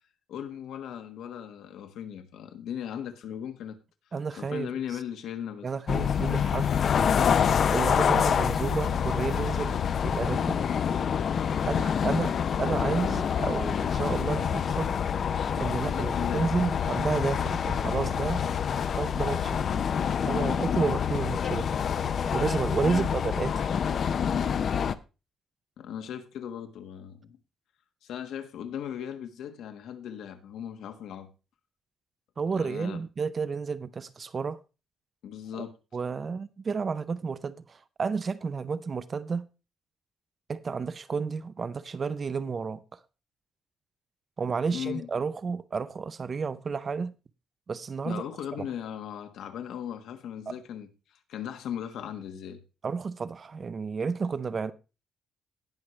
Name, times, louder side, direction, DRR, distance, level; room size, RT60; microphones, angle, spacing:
voice 1, 0.3-3.8 4.3-5.7 15.8-16.5 22.8-23.1 25.8-27.4 28.0-31.3 32.5-33.0 35.2-35.7 44.7-45.1 48.0-52.6, left 9 dB, 75° left, 1.5 m, -38 dB
voice 2, 4.1-4.7 5.6-6.7 7.7-10.6 11.7-14.9 15.6-18.4 19.0-19.6 20.3-21.7 22.3-23.7 32.4-34.6 35.6-35.7 35.9-39.5 40.5-43.0 44.4-47.1 47.7-48.2 48.6-48.7 50.5-50.6 52.8-54.7, right 5 dB, 25° right, 0.5 m, -31 dB
sound 1, 5.9-24.9, left 7 dB, 40° left, 0.5 m, -27 dB
18.5 x 6.3 x 3.1 m
cardioid pair, 175°, 0 cm